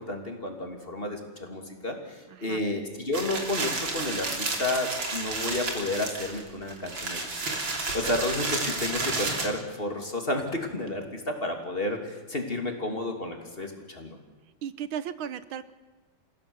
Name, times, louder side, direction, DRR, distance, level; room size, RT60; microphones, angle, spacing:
voice 1, 0.0-7.3 7.6-14.2, left 2 dB, 30° left, 3 dB, 2.8 m, -31 dB
sound 1, 3.1-9.5, right 3 dB, 70° right, 3.8 m, -31 dB
voice 2, 14.6-15.7, right 9 dB, 90° right, 14 dB, 1.8 m, -35 dB
29.5 x 16.5 x 7.0 m, 1.2 s
omnidirectional pair, 2.2 m